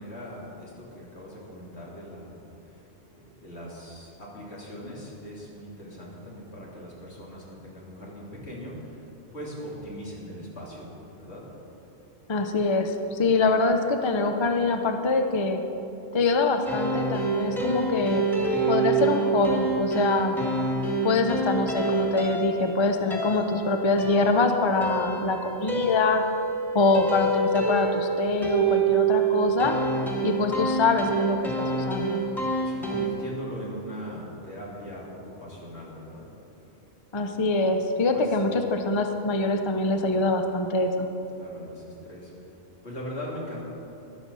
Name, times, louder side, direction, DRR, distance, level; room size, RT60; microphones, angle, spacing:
voice 1, 0.0-9.0 9.3-11.4 32.6-36.3 38.1-38.4 41.4-42.3 42.8-43.6, equal, 75° left, -5 dB, 3.3 m, -40 dB
voice 2, 12.3-15.6 16.1-18.3 18.6-20.4 21.0-26.2 26.7-29.8 30.2-32.2 37.1-41.1, left 3 dB, 30° left, 5 dB, 0.6 m, -24 dB
sound 1, 16.7-33.1, right 3 dB, ahead, 2.1 m, -27 dB
13.5 x 11.5 x 5.5 m, 3.0 s
omnidirectional pair, 1.1 m